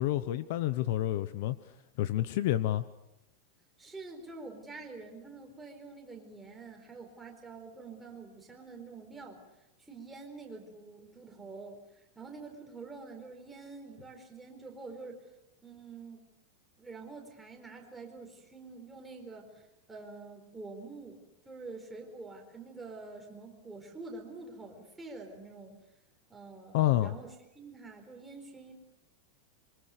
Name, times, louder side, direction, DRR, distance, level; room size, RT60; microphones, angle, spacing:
voice 1, 0.0-1.6 2.0-2.8 26.7-27.1, left 14 dB, 50° left, 14 dB, 1.0 m, -28 dB
voice 2, 3.8-9.4 9.8-11.8 12.2-15.2 15.6-16.2 16.8-21.2 21.4-25.7 26.3-28.7, right 3 dB, 5° right, 1 dB, 4.4 m, -47 dB
26.5 x 24.5 x 6.7 m, 0.88 s
supercardioid pair, 175°, 0 cm